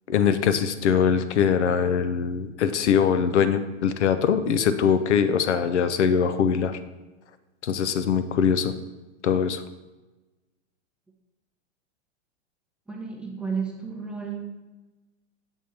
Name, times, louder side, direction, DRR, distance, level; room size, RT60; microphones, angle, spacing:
voice 1, 0.1-6.8 7.6-8.7 9.2-9.6, left 7 dB, 80° left, 11 dB, 0.6 m, -22 dB
voice 2, 12.9-14.7, right 5 dB, 5° right, -1 dB, 0.5 m, -32 dB
7.3 x 3.5 x 4.2 m, 1.1 s
hypercardioid pair, 125°, 34 cm